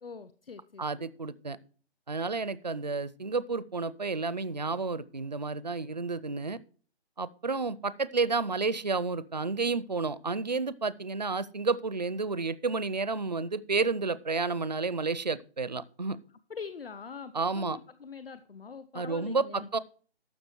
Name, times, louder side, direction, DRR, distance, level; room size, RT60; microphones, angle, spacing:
voice 1, 0.0-1.1 16.5-19.7, left 5 dB, 60° left, 13 dB, 0.9 m, -43 dB
voice 2, 0.8-1.6 2.1-6.6 7.2-16.2 17.3-17.8 18.9-19.8, right 4 dB, 40° right, 17 dB, 0.5 m, -31 dB
12.5 x 7.1 x 4.4 m, 0.40 s
hypercardioid pair, 180°, 32 cm